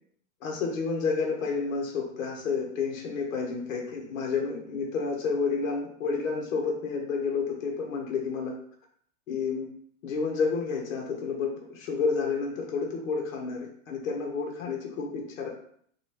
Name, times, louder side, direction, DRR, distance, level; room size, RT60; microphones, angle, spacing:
voice 1, 0.4-8.5 9.3-9.7 10.0-15.5, left 5 dB, 75° left, 0 dB, 0.9 m, -30 dB
2.9 x 2.3 x 3.2 m, 0.63 s
supercardioid pair, 180°, 40 cm